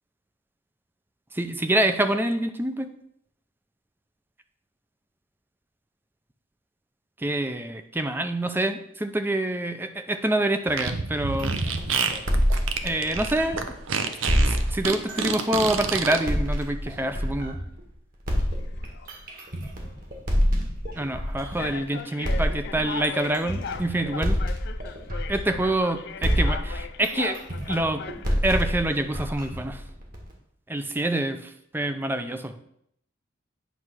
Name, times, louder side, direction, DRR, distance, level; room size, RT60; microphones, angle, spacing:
voice 1, 1.3-2.9 7.2-11.5 12.8-13.6 14.5-17.6 20.9-24.4 25.3-27.4 27.7-28.0 28.4-29.8 30.7-32.5, right 1 dB, 10° right, 8 dB, 0.5 m, -26 dB
Fart, 10.7-16.2, right 5 dB, 85° right, 0.7 m, -28 dB
sound 1, 11.4-13.8 14.3-17.8 18.3-21.8 22.2-25.9 26.2-30.3, equal, 45° right, 1.8 m, -27 dB
sound 2, 18.5-19.1 19.8-20.0 20.9-21.0 21.6-28.9, left 6 dB, 55° left, 0.4 m, -38 dB
9.2 x 3.2 x 6.1 m, 0.72 s
head